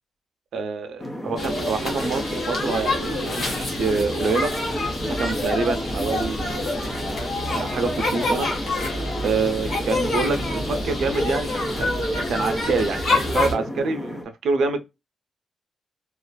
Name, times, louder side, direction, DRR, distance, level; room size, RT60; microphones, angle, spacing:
voice 1, 0.5-4.5 5.2-6.8 7.5-8.5 9.2-12.0 12.3-14.8, right 4 dB, 70° right, 0.5 m, -26 dB
sound 1, 1.0-14.2, left 1 dB, 15° left, 0.5 m, -33 dB
sound 2, 1.4-13.5, left 1 dB, 45° left, 0.9 m, -27 dB
2.4 x 2.3 x 2.2 m
wide cardioid pair, 175°, 0 cm